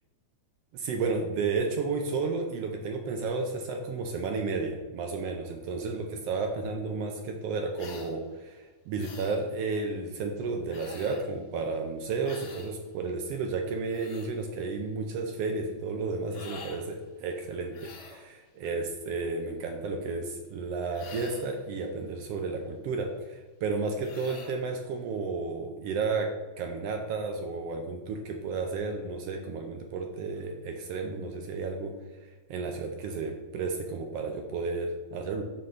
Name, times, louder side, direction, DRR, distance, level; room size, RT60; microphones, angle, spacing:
voice 1, 0.7-26.3 26.6-31.9 32.5-35.4, right 4 dB, 80° right, 4 dB, 1.4 m, -32 dB
sound 1, 7.8-8.1 9.0-9.4 10.7-11.3 12.2-12.7 13.6-14.3 16.3-16.8 17.7-18.3 20.9-21.6 24.0-24.6, left 5 dB, 70° left, 2.0 m, -46 dB
11.0 x 3.9 x 3.2 m, 1.3 s
omnidirectional pair, 3.3 m